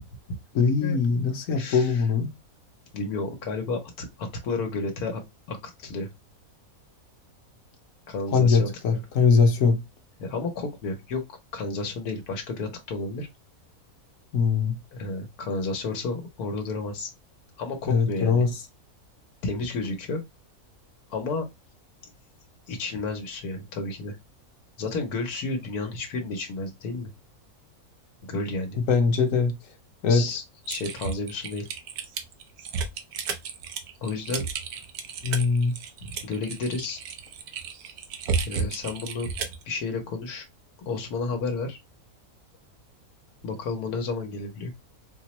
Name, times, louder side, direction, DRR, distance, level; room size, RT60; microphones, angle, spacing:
voice 1, 0.5-2.3 8.3-9.8 14.3-14.8 17.9-18.5 28.7-29.5 30.0-30.2 35.2-35.7, left 5 dB, 65° left, 1.0 m, -21 dB
voice 2, 1.5-2.0 2.9-5.2 5.5-6.1 8.1-9.0 10.2-11.2 11.5-13.3 14.9-17.1 17.6-18.4 19.4-20.2 21.1-21.5 22.7-24.2 24.8-27.1 28.2-28.8 30.1-31.7 34.0-34.4 36.0-37.0 38.4-39.3 39.7-40.4 40.9-41.8 43.4-44.7, left 3 dB, 85° left, 1.3 m, -31 dB
Typing, 30.7-39.6, right 5 dB, 85° right, 1.2 m, -33 dB
4.3 x 2.0 x 2.9 m
omnidirectional pair, 1.6 m